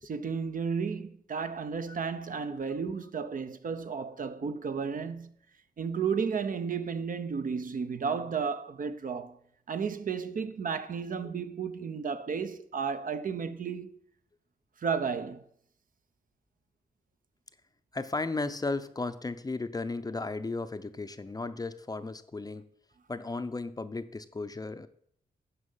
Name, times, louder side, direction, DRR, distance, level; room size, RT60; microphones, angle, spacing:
voice 1, 0.0-5.3 5.8-9.4 9.7-14.0 14.8-15.4, right 6 dB, 55° right, 0.7 m, -33 dB
voice 2, 17.9-22.6 23.1-24.9, left 3 dB, 25° left, 0.5 m, -35 dB
9.7 x 5.5 x 5.5 m
wide cardioid pair, 100°, 17 cm